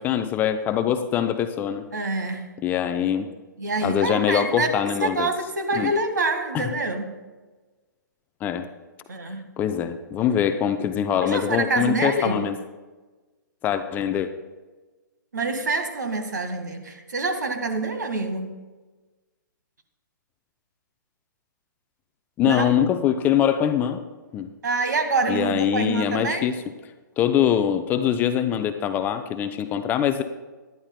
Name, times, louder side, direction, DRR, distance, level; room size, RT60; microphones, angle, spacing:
voice 1, 0.0-1.8 2.6-3.3 3.8-5.3 5.7-5.9 6.5-6.7 8.4-8.7 9.6-12.6 13.6-14.3 22.4-24.0 24.3-24.5 25.3-26.6 27.2-30.2, left 9 dB, 15° left, 9 dB, 0.5 m, -23 dB
voice 2, 1.9-2.5 3.6-4.7 5.0-7.1 9.1-9.4 11.2-12.5 15.3-18.5 22.4-22.7 24.6-26.5, right 3 dB, 65° right, 8 dB, 1.6 m, -26 dB
19.5 x 12.0 x 2.2 m, 1.3 s
figure-of-eight pair, 120°, 11 cm